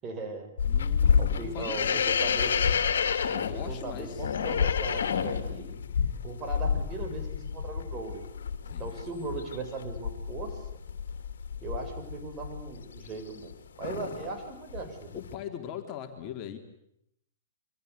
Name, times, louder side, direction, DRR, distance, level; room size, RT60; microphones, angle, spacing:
voice 1, 0.0-0.5 1.2-2.5 3.2-5.7 6.2-8.2 8.8-10.7 11.6-13.5 13.8-15.2, right 3 dB, 25° right, 4 dB, 7.5 m, -38 dB
sound 1, 0.6-13.5 13.8-14.3 14.7-15.3, left 7 dB, 60° left, 2.9 m, -29 dB
voice 2, 0.6-2.1 3.3-4.4 5.5-5.9 8.7-8.9 15.1-16.6, left 9 dB, 30° left, 4 dB, 3.7 m, -41 dB
27.5 x 25.5 x 8.5 m, 0.78 s
figure-of-eight pair, 115°, 0 cm